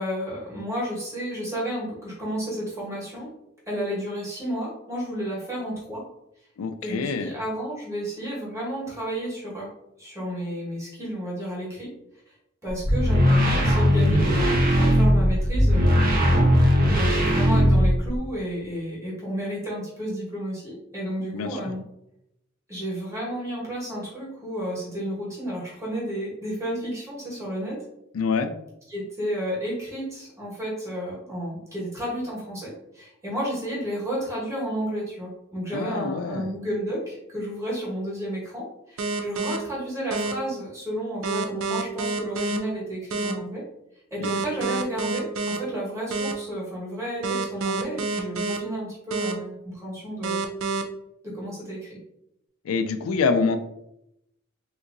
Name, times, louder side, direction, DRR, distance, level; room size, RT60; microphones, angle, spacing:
voice 1, 0.0-3.3 3.7-6.0 6.8-9.7 10.0-11.9 12.6-16.3 17.0-21.8 22.7-27.8 28.9-43.6 44.1-50.4 51.2-52.0, equal, 15° right, -6 dB, 1.3 m, -32 dB
voice 2, 6.6-7.3 21.3-21.7 28.1-28.5 35.7-36.5 52.6-53.6, left 4 dB, 90° left, 8 dB, 0.4 m, -26 dB
sound 1, 12.7-18.2, equal, 45° right, 0.8 m, -19 dB
sound 2, 39.0-39.6 40.1-40.3 41.2-42.6 43.1-43.3 44.2-45.6 46.1-46.3 47.2-48.6 49.1-49.3 50.2-50.8, right 3 dB, 70° right, 0.4 m, -27 dB
3.5 x 2.9 x 2.5 m, 0.82 s
head